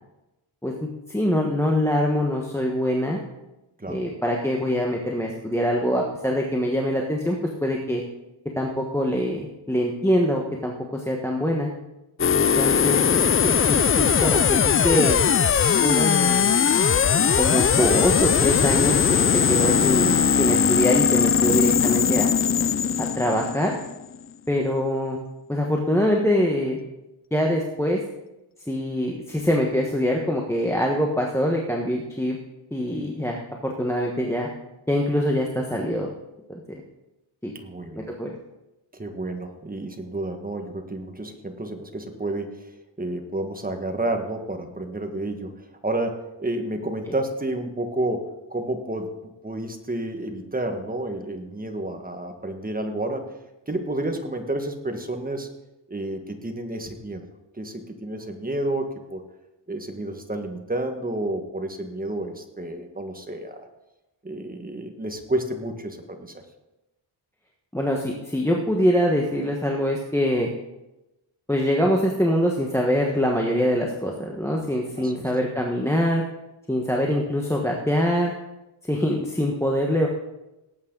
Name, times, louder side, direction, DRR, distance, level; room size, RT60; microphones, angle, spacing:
voice 1, 0.6-3.2 3.8-8.0 8.6-11.7 12.3-15.2 15.8-16.5 17.3-22.3 23.0-23.7 24.5-25.2 25.5-26.8 27.3-28.0 28.7-32.4 32.7-34.5 34.9-36.1 36.5-36.8 37.4-37.5 38.0-38.3 67.7-70.5 71.5-76.2 76.7-78.3 78.8-80.1, equal, 5° left, 0 dB, 1.3 m, -24 dB
sound 1, 12.2-24.2, left 7 dB, 30° left, 0.4 m, -20 dB
voice 2, 37.5-38.1 38.9-53.2 53.7-55.5 55.9-57.2 57.5-59.2 59.7-63.7 64.2-66.3 75.0-75.2, right 1 dB, 20° right, 5 dB, 1.5 m, -30 dB
18.0 x 8.7 x 3.9 m, 0.97 s
wide cardioid pair, 105°, 48 cm